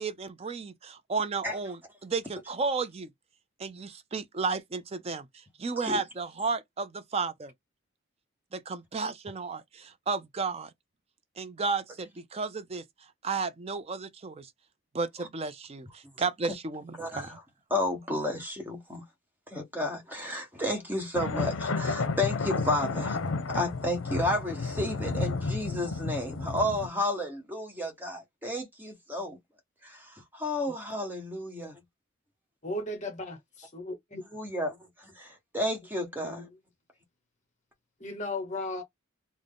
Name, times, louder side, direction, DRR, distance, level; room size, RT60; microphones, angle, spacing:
voice 1, 0.0-3.1 3.6-7.5 8.5-10.7 11.4-12.8 13.2-14.5 14.9-17.4, right 4 dB, 30° right, 0.4 m, -33 dB
voice 2, 17.0-17.3 17.7-19.0 19.5-23.2 23.5-29.4 29.8-31.8 34.3-36.5, left 1 dB, 10° right, 1.0 m, -32 dB
sound 1, 21.1-26.9, left 4 dB, 85° left, 0.6 m, -31 dB
voice 3, 32.6-34.2 36.2-36.5 38.0-38.8, left 2 dB, 35° left, 1.0 m, -36 dB
3.6 x 2.1 x 3.7 m
head